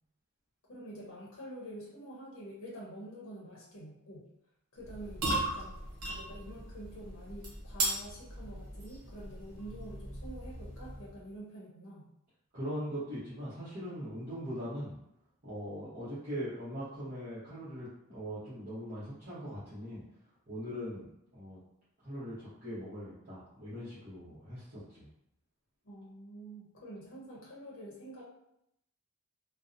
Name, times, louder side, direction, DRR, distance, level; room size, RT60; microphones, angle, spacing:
voice 1, 0.7-4.3 4.7-5.8 6.1-12.1 25.8-28.2, right 1 dB, 60° left, -5 dB, 0.7 m, -47 dB
sound 1, 4.8-11.2, right 2 dB, 80° right, 0.8 m, -38 dB
voice 2, 12.5-14.9 15.4-20.0 20.5-21.1 21.3-21.6 22.0-25.1, equal, 40° right, -13 dB, 0.9 m, -40 dB
2.7 x 2.0 x 2.5 m, 0.78 s
head